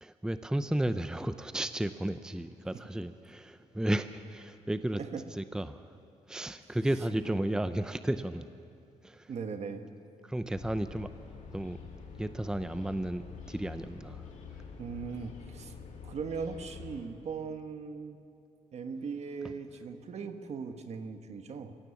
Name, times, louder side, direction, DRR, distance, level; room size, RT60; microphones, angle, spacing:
voice 1, 0.0-5.0 5.3-5.8 6.3-8.5 9.0-9.3 10.2-11.1 11.5-11.8 12.2-14.2, right 1 dB, 5° right, 11 dB, 0.6 m, -33 dB
voice 2, 9.3-9.9 14.8-15.7 16.0-18.2 18.7-21.7, right 5 dB, 60° right, 7 dB, 1.5 m, -39 dB
sound 1, 10.5-17.1, left 5 dB, 80° left, 3.0 m, -47 dB
24.0 x 17.0 x 7.2 m, 2.6 s
cardioid pair, 105°, 13 cm